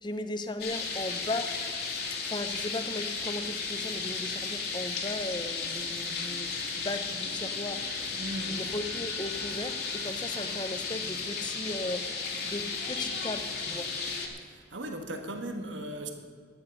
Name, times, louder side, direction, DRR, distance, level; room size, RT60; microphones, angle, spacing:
voice 1, 0.0-1.5 2.3-7.8 8.5-12.0 12.4-13.9, left 2 dB, 25° left, 9 dB, 0.8 m, -37 dB
sound 1, 0.6-14.3, left 4 dB, 55° left, 2.2 m, -34 dB
voice 2, 8.2-8.7 14.5-16.1, right 1 dB, 80° right, 5 dB, 1.3 m, -37 dB
14.0 x 10.5 x 5.4 m, 2.1 s
head